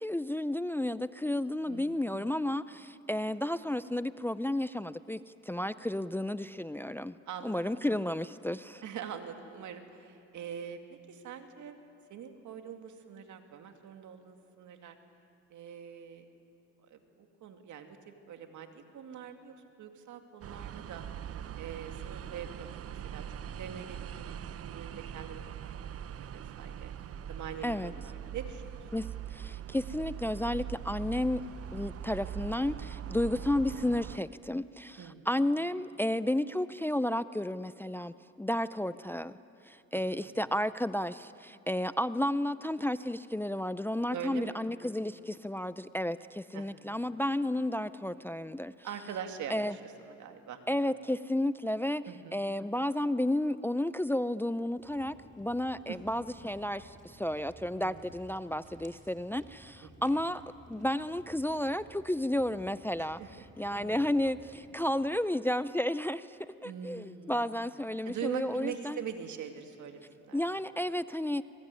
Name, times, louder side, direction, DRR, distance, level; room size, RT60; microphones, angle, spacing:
voice 1, 0.0-7.2 7.4-8.8 27.6-27.9 28.9-31.4 31.7-39.3 39.7-49.2 49.5-49.8 50.7-60.4 60.7-69.1 70.3-71.4, left 1 dB, 5° left, 14 dB, 0.5 m, -32 dB
voice 2, 1.6-2.1 7.3-7.6 8.8-11.8 12.1-15.0 15.5-16.3 16.9-18.0 18.3-21.0 21.5-23.2 23.5-25.4 25.8-25.9 26.3-26.9 27.3-28.8 35.0-35.3 39.9-40.3 44.1-44.5 46.5-47.0 48.8-50.6 52.1-52.4 55.9-56.0 57.8-58.0 59.8-60.2 63.0-63.3 63.7-64.0 66.6-67.6 68.0-70.5, right 8 dB, 75° right, 6 dB, 2.4 m, -43 dB
sound 1, 20.4-34.2, right 9 dB, 50° right, 0.7 m, -42 dB
Walk footsteps, 54.8-64.7, right 1 dB, 25° right, 4.8 m, -56 dB
25.5 x 22.0 x 9.8 m, 2.6 s
cardioid pair, 90°, 30 cm